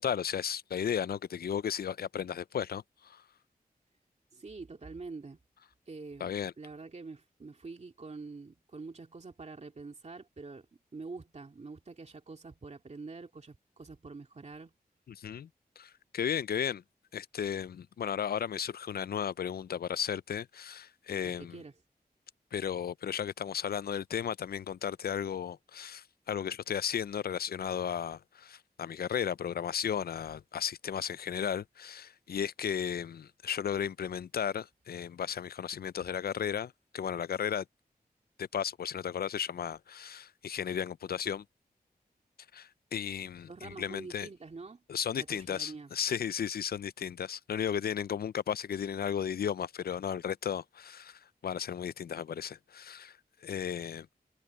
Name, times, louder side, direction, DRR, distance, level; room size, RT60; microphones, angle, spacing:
voice 1, 0.0-3.2 6.2-6.5 15.1-15.5 15.8-16.8 17.1-21.6 22.5-37.6 38.4-41.4 42.5-44.3 44.9-53.2 53.4-54.1, left 8 dB, 75° left, 0.4 m, -34 dB
voice 2, 4.3-5.4 5.9-6.3 6.6-10.7 10.9-14.7 21.2-21.7 43.5-44.8 45.1-45.9, right 3 dB, 45° right, 2.3 m, -46 dB
wide cardioid pair, 80°, 16 cm